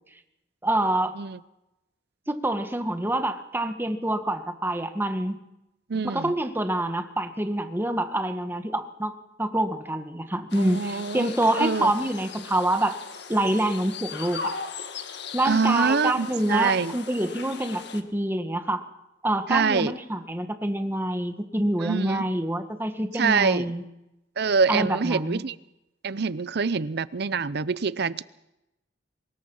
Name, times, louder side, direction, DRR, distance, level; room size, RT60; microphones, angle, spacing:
voice 1, 0.6-1.1 2.3-5.4 6.0-9.1 9.4-13.0 13.3-14.6 15.3-18.8 19.2-23.8 24.7-25.4, right 1 dB, 10° right, 7 dB, 1.5 m, -26 dB
voice 2, 5.9-6.3 10.6-11.3 11.6-11.9 15.4-16.9 19.5-19.9 21.8-22.2 23.1-23.7 24.4-25.6 26.0-28.2, right 5 dB, 60° right, 18 dB, 0.7 m, -25 dB
sound 1, 10.5-18.0, left 5 dB, 65° left, 1.8 m, -38 dB
24.5 x 20.5 x 5.6 m, 0.90 s
head